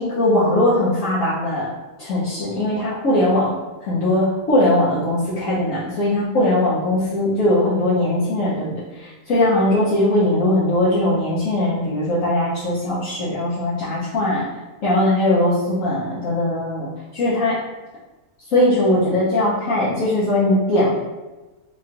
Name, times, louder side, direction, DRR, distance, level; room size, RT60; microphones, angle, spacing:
voice 1, 0.0-1.7 2.0-3.6 3.8-14.4 14.8-17.6 18.5-20.9, left 1 dB, 65° left, -10 dB, 1.3 m, -20 dB
4.8 x 2.3 x 2.8 m, 1.1 s
omnidirectional pair, 1.6 m